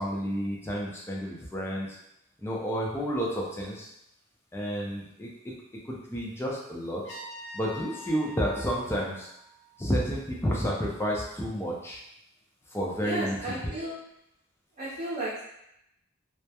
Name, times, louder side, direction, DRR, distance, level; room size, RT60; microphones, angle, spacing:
voice 1, 0.0-1.9 2.4-3.9 4.5-5.5 5.9-7.0 7.5-9.3 9.8-12.0 12.7-13.7, equal, 10° left, -4 dB, 0.4 m, -30 dB
Trumpet, 7.0-10.0, left 1 dB, 65° left, 0.9 m, -45 dB
voice 2, 13.0-14.0 14.8-15.4, right 2 dB, 30° right, -11 dB, 0.7 m, -33 dB
2.2 x 2.1 x 2.8 m, 0.81 s
head